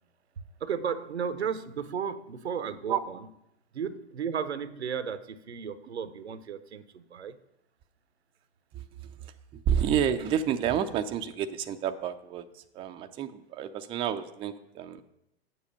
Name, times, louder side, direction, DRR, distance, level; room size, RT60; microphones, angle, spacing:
voice 1, 0.6-3.2 3.7-7.4, right 7 dB, 80° right, 14 dB, 0.7 m, -34 dB
voice 2, 8.7-15.0, right 9 dB, 15° right, 7 dB, 0.4 m, -30 dB
8.3 x 7.2 x 5.3 m, 0.83 s
figure-of-eight pair, 100°, 32 cm